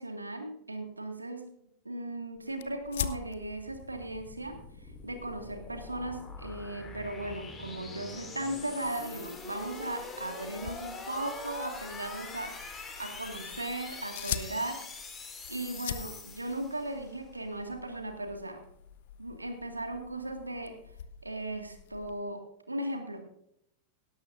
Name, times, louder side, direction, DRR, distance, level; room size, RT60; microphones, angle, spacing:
voice 1, 0.0-1.5 1.8-4.6 5.0-14.8 15.5-18.6 19.2-20.8 21.2-23.3, right 1 dB, 80° right, 5 dB, 1.9 m, -37 dB
sound 1, 2.5-17.1, left 4 dB, 20° left, 2.5 m, -44 dB
sound 2, 2.6-22.2, left 10 dB, 55° left, 0.7 m, -45 dB
17.5 x 12.5 x 2.6 m, 0.78 s
figure-of-eight pair, 90°, 0 cm